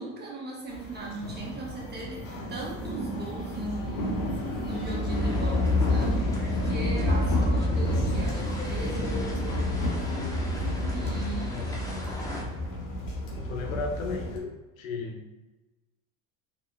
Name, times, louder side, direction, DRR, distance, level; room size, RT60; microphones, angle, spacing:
voice 1, 0.0-9.7 10.9-12.5, right 2 dB, 25° right, -3 dB, 1.3 m, -39 dB
sound 1, 0.7-14.4, left 1 dB, 55° left, 1.3 m, -29 dB
sound 2, 5.1-12.4, left 1 dB, 10° left, 0.9 m, -42 dB
voice 2, 13.3-14.5 14.8-15.2, left 4 dB, 85° left, 2 dB, 0.9 m, -34 dB
4.3 x 3.5 x 2.3 m, 1.1 s
supercardioid pair, 100°, 40 cm